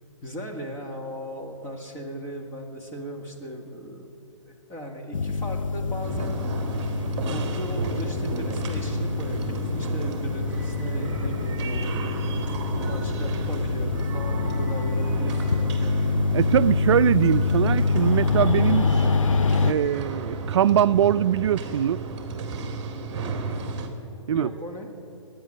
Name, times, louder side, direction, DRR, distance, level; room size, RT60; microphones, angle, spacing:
voice 1, 0.2-4.1 4.5-6.4 7.3-12.4 12.9-15.9 24.3-24.9, equal, 15° left, 1.8 m, -37 dB
sound 1, 5.1-19.7, left 4 dB, 90° left, 0.6 m, -26 dB
sound 2, 6.0-23.9, right 4 dB, 25° right, 1.9 m, -33 dB
voice 2, 16.3-18.9 19.6-22.0 24.3-24.5, right 9 dB, 60° right, 0.4 m, -22 dB
21.5 x 9.4 x 6.4 m
hypercardioid pair, 145°, 16 cm